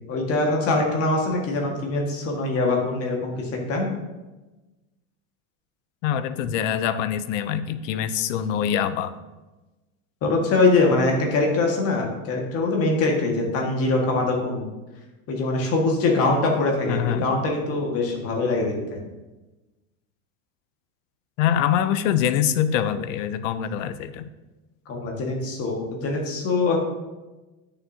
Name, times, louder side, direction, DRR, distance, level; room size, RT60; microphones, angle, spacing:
voice 1, 0.1-3.9 10.2-14.7 15.3-19.0 24.8-26.8, left 3 dB, 35° left, 0 dB, 1.7 m, -23 dB
voice 2, 6.0-9.1 16.9-17.3 21.4-24.3, left 9 dB, 65° left, 13 dB, 0.6 m, -24 dB
10.5 x 6.6 x 2.8 m, 1.1 s
supercardioid pair, 145°, 41 cm